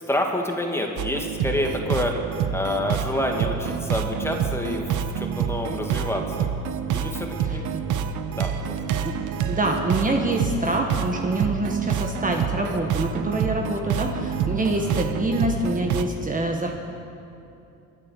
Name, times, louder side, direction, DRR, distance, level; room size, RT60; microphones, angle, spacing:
voice 1, 0.1-2.2 2.5-6.5 6.9-7.6 8.3-8.8 11.3-11.4 14.8-15.0, left 1 dB, 10° left, 1 dB, 2.3 m, -28 dB
sound 1, 1.0-16.0, right 7 dB, 85° right, 0.9 m, -27 dB
voice 2, 7.4-7.8 9.0-16.7, right 2 dB, 25° right, 2 dB, 1.5 m, -26 dB
24.5 x 8.9 x 6.6 m, 2.8 s
cardioid pair, 90°, 30 cm